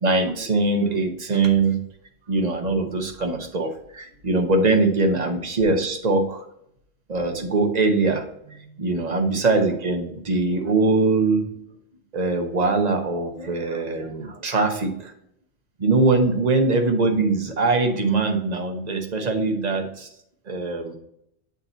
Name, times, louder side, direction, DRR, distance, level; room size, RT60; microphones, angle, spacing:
voice 1, 0.0-1.8 2.3-6.4 7.1-8.2 8.8-11.4 12.1-15.1 15.8-20.1 20.5-20.9, right 3 dB, 40° right, 4 dB, 0.9 m, -22 dB
8.4 x 2.9 x 3.9 m, 0.73 s
omnidirectional pair, 1.2 m